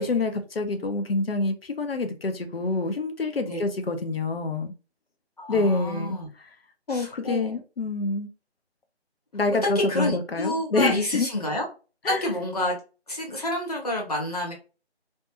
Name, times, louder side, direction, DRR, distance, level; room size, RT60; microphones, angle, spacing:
voice 1, 0.0-4.7 5.5-6.2 6.9-8.3 9.3-11.3 12.0-12.2, left 3 dB, 60° left, 7 dB, 0.6 m, -26 dB
voice 2, 5.4-6.3 6.9-7.5 9.5-11.6 12.1-12.8 13.1-14.5, left 1 dB, 35° left, -1 dB, 1.0 m, -29 dB
2.6 x 2.3 x 2.7 m, 0.33 s
figure-of-eight pair, 165°, 34 cm